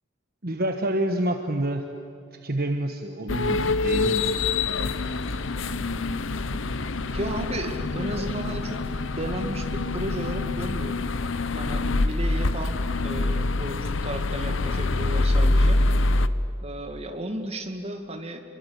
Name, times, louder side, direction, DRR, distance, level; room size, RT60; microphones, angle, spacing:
voice 1, 0.4-1.8 2.3-4.4, right 1 dB, 50° right, 5 dB, 1.3 m, -28 dB
sound 1, 3.3-16.3, left 2 dB, 70° left, 0.8 m, -25 dB
voice 2, 7.1-8.8 9.2-11.1 11.5-15.8 16.6-18.4, right 1 dB, 30° right, 5 dB, 2.2 m, -34 dB
28.0 x 23.0 x 8.2 m, 2.6 s
head